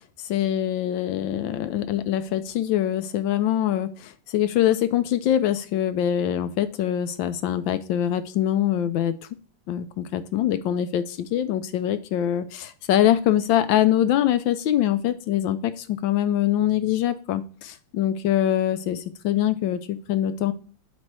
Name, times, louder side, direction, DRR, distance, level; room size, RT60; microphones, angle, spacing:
voice 1, 0.3-9.2 9.7-20.5, left 11 dB, 75° left, 11 dB, 1.3 m, -24 dB
7.4 x 3.2 x 6.0 m, 0.38 s
omnidirectional pair, 2.1 m